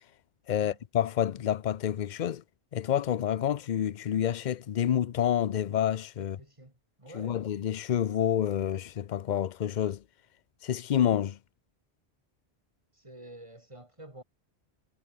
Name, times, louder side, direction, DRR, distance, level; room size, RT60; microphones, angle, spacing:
voice 1, 0.5-2.4 2.7-6.4 7.1-10.0 10.6-11.4, left 10 dB, 50° left, 0.7 m, -28 dB
voice 2, 6.2-6.7 7.0-7.4 12.9-14.2, right 1 dB, 30° right, 4.1 m, -48 dB
omnidirectional pair, 1.1 m